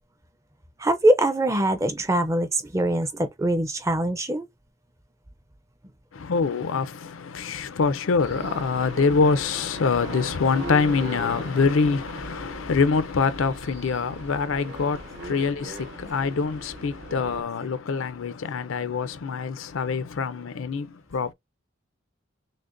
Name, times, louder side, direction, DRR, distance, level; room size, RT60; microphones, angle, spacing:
voice 1, 0.8-4.5, right 1 dB, 15° right, 0.5 m, -23 dB
voice 2, 6.1-20.9 21.1-21.3, left 4 dB, 75° left, 0.5 m, -25 dB
sound 1, 8.2-17.4, right 2 dB, 55° right, 0.9 m, -39 dB
6.2 x 2.1 x 2.5 m
head